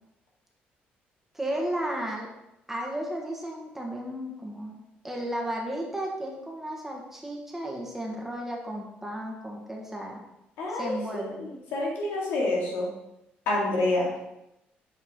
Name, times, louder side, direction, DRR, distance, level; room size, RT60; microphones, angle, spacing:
voice 1, 1.3-2.3 2.7-10.2 10.7-11.4, right 1 dB, 10° right, -1 dB, 1.4 m, -34 dB
voice 2, 10.6-12.9 13.5-14.1, left 2 dB, 90° left, -4 dB, 2.2 m, -28 dB
7.3 x 4.7 x 3.7 m, 0.89 s
cardioid pair, 120°, 4 cm